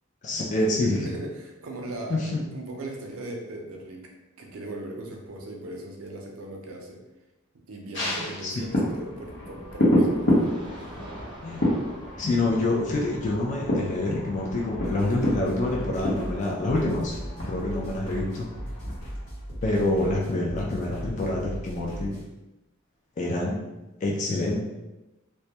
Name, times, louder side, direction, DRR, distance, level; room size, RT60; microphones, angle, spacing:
voice 1, 0.2-1.1 2.1-2.5 8.1-8.6 11.4-11.6 12.2-17.1 17.5-18.5 19.6-22.2 23.2-23.6 24.0-24.6, left 2 dB, 35° left, -2 dB, 0.3 m, -27 dB
voice 2, 0.8-4.1 4.4-7.0 7.7-11.0 17.6-17.9, right 2 dB, 85° right, 1 dB, 0.5 m, -39 dB
sound 1, 7.9-19.6 20.0-20.1, equal, 60° left, 0.7 m, -29 dB
sound 2, 10.1-17.1, right 1 dB, 20° right, 0.5 m, -46 dB
sound 3, 14.7-22.2, equal, 80° left, 1.0 m, -38 dB
2.1 x 2.1 x 2.7 m, 1.0 s
head